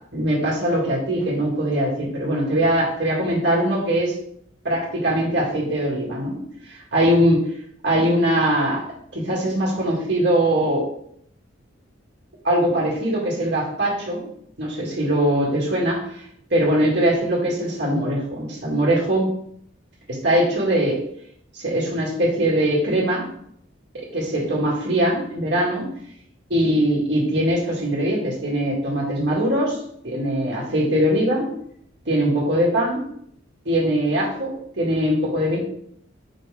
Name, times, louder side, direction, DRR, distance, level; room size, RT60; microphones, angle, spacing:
voice 1, 0.1-4.2 4.6-6.4 6.7-7.5 7.8-8.8 9.1-10.8 12.4-14.3 14.6-16.0 16.5-19.3 20.1-21.0 21.5-23.3 24.1-25.9 26.5-29.8 30.0-31.5 32.1-33.0 33.7-35.6, right 1 dB, 60° right, -4 dB, 2.1 m, -21 dB
5.1 x 3.9 x 4.9 m, 0.68 s
head